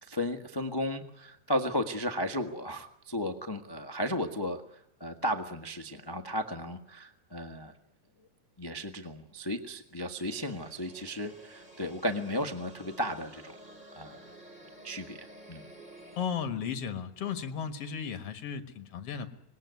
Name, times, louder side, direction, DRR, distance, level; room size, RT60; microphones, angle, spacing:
voice 1, 0.0-7.7 8.6-13.6 13.9-14.2 14.8-15.6, equal, 30° left, 6 dB, 0.4 m, -34 dB
sound 1, 10.2-16.3, right 1 dB, 15° right, 3.4 m, -52 dB
voice 2, 16.2-19.3, left 7 dB, 55° left, 8 dB, 2.4 m, -35 dB
25.5 x 20.0 x 9.5 m, 0.79 s
omnidirectional pair, 3.3 m